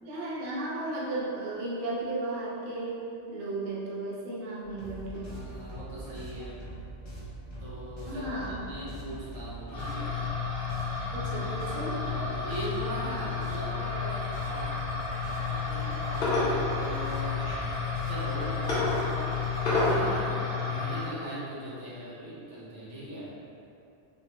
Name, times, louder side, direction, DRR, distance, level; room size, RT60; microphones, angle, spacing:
voice 1, 0.0-3.0 3.3-5.3 8.1-8.6 11.1-12.0, right 2 dB, 55° right, -7 dB, 0.7 m, -34 dB
sound 1, 4.6-20.0, right 2 dB, 35° left, 0.5 m, -42 dB
voice 2, 5.2-6.6 7.6-10.2 12.1-14.8 15.2-17.4 18.1-19.1 19.7-23.3, right 1 dB, 85° right, -8 dB, 1.1 m, -40 dB
sound 2, 9.7-21.0, left 4 dB, 55° left, 0.9 m, -30 dB
3.5 x 2.0 x 2.9 m, 2.6 s
omnidirectional pair, 1.2 m